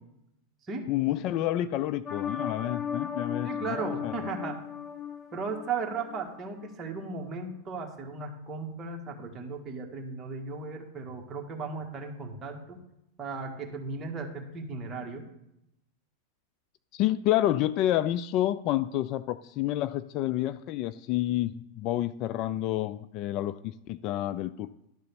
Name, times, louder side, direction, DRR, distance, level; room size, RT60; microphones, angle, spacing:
voice 1, 0.9-4.1 16.9-24.7, left 13 dB, 50° left, 15 dB, 0.3 m, -29 dB
sound 1, 2.1-6.3 6.6-6.7, left 7 dB, 30° left, 0.8 m, -36 dB
voice 2, 3.4-4.6 5.3-12.8 13.2-15.3, right 4 dB, 25° right, 1 dB, 1.7 m, -36 dB
11.5 x 4.0 x 6.8 m, 0.83 s
hypercardioid pair, 120°, 0 cm